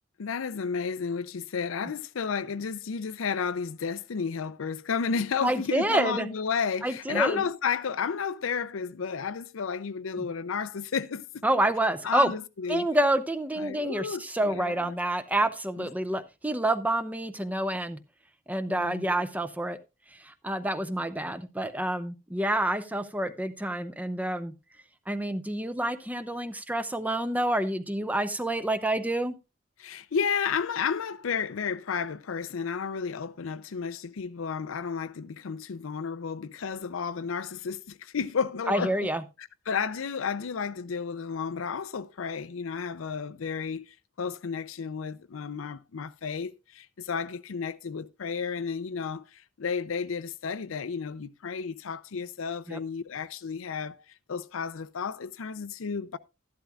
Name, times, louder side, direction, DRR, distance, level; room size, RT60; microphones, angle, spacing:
voice 1, 0.2-11.4 12.0-12.9 13.6-15.0 15.8-15.9 18.7-19.1 29.8-39.1 39.4-54.0 54.3-56.2, left 6 dB, 80° left, 0.5 m, -32 dB
voice 2, 5.4-6.3 6.8-7.4 10.2-10.3 11.4-12.3 12.7-18.0 18.5-19.8 20.2-24.5 25.1-29.3 38.7-39.2 52.7-52.8, right 1 dB, 10° right, 0.6 m, -28 dB
12.5 x 11.5 x 2.4 m
head